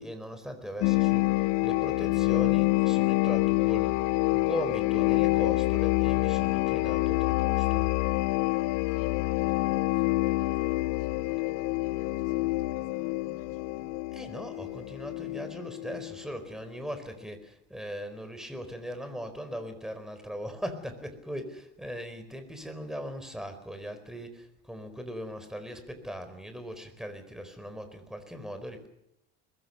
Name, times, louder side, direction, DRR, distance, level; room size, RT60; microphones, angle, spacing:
voice 1, 0.0-4.0 4.3-7.9 14.1-28.9, equal, ahead, 4.4 m, -39 dB
sound 1, 0.8-16.3, left 22 dB, 85° left, 0.8 m, -27 dB
voice 2, 8.9-14.1, left 6 dB, 50° left, 6.1 m, -55 dB
23.5 x 21.0 x 6.7 m
cardioid pair, 140°, 32 cm